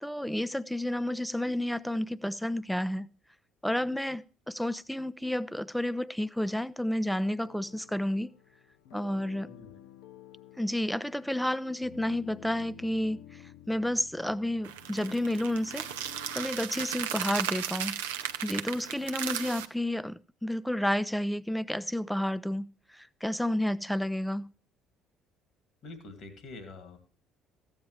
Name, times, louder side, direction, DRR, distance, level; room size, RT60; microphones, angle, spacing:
voice 1, 0.0-3.1 3.6-8.3 8.9-9.5 10.6-15.9 16.3-18.0 18.4-24.5, left 1 dB, ahead, 0.5 m, -31 dB
sound 1, 7.4-16.7, left 12 dB, 70° left, 0.6 m, -52 dB
voice 2, 9.5-9.9 25.8-27.0, left 3 dB, 55° left, 2.2 m, -46 dB
sound 2, 14.6-19.6, right 10 dB, 75° right, 0.6 m, -35 dB
14.5 x 8.8 x 3.1 m
figure-of-eight pair, 55°, 0 cm